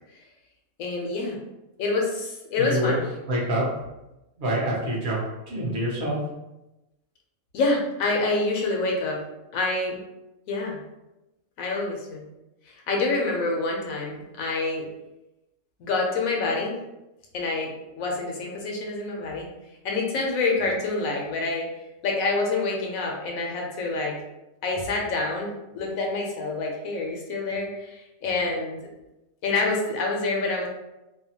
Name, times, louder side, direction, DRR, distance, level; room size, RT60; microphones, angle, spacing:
voice 1, 0.8-1.4 1.8-3.0 7.5-9.2 9.5-10.0 10.5-10.8 11.6-12.2 12.7-14.9 15.8-16.7 17.3-19.5 19.8-21.7 22.0-24.2 24.6-28.8 29.4-30.7, left 3 dB, 75° left, -1 dB, 1.0 m, -27 dB
voice 2, 2.6-3.0 3.3-3.7 4.4-6.2, right 1 dB, 45° right, -4 dB, 0.8 m, -26 dB
2.8 x 2.1 x 2.8 m, 0.97 s
omnidirectional pair, 1.5 m